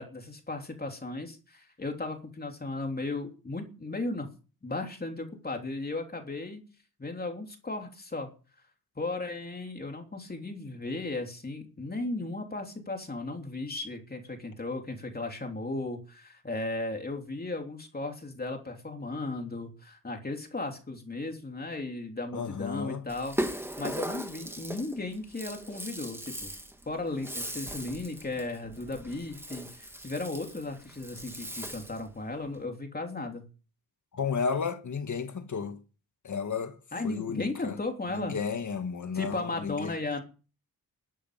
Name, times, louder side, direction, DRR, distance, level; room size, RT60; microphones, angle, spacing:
voice 1, 0.0-4.3 4.6-6.6 7.0-8.3 9.0-26.5 26.9-33.4 36.9-38.4 39.1-40.2, left 2 dB, 25° left, 3.2 m, -36 dB
voice 2, 22.3-23.0 34.1-35.8 36.2-36.8 37.0-37.8 38.1-39.9, left 5 dB, 55° left, 1.8 m, -33 dB
Rattle (instrument), 23.1-32.1, right 1 dB, 5° right, 1.6 m, -39 dB
13.0 x 10.0 x 6.8 m
wide cardioid pair, 125°, 36 cm